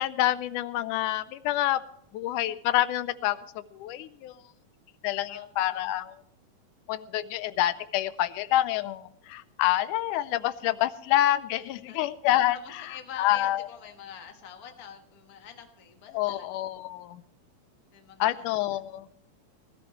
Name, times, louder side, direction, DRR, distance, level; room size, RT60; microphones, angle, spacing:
voice 1, 0.0-1.8 2.1-3.4 3.7-4.3 5.0-6.2 6.9-12.9 13.2-13.7 16.1-17.2 18.2-19.1, left 14 dB, 90° left, 15 dB, 2.1 m, -27 dB
voice 2, 5.3-5.9 11.6-12.0 12.5-16.5 17.9-18.5, left 8 dB, 40° left, 5 dB, 1.4 m, -46 dB
18.5 x 13.5 x 3.0 m, 0.73 s
omnidirectional pair, 3.5 m